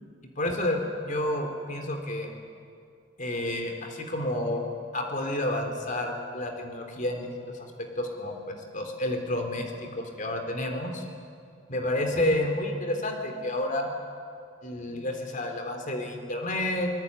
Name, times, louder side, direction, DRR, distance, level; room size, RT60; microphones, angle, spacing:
voice 1, 0.2-2.3 3.2-4.6 4.9-11.0 11.7-13.9 14.6-16.9, left 1 dB, 40° left, 4 dB, 3.6 m, -30 dB
24.5 x 21.5 x 9.8 m, 2.3 s
head